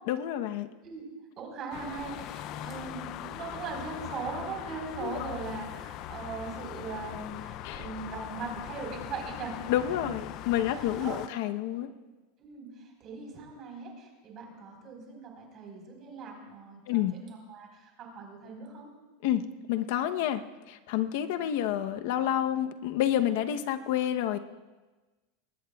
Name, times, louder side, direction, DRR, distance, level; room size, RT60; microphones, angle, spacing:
voice 1, 0.1-0.7 5.0-5.3 7.6-7.9 9.7-11.9 16.9-17.1 19.2-20.4 20.7-24.4, left 11 dB, 55° left, 8 dB, 0.9 m, -29 dB
voice 2, 1.4-9.6 9.9-10.2 10.8-11.2 12.4-18.9, right 4 dB, 30° right, 0 dB, 4.2 m, -40 dB
sound 1, 1.7-11.3, left 13 dB, 40° left, 0.4 m, -41 dB
22.0 x 19.0 x 2.4 m, 1.2 s
supercardioid pair, 165°, 0 cm